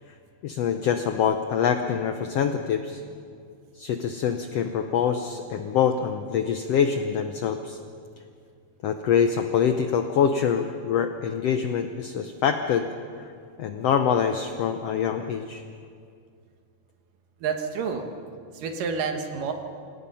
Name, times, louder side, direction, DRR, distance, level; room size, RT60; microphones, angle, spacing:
voice 1, 0.4-3.0 3.8-7.8 8.8-12.9 13.2-13.3 13.6-15.6, left 7 dB, 80° left, 7 dB, 1.4 m, -25 dB
voice 2, 17.4-18.1 18.5-19.5, right 5 dB, 80° right, 5 dB, 3.2 m, -29 dB
26.5 x 18.0 x 5.6 m, 2.3 s
omnidirectional pair, 3.8 m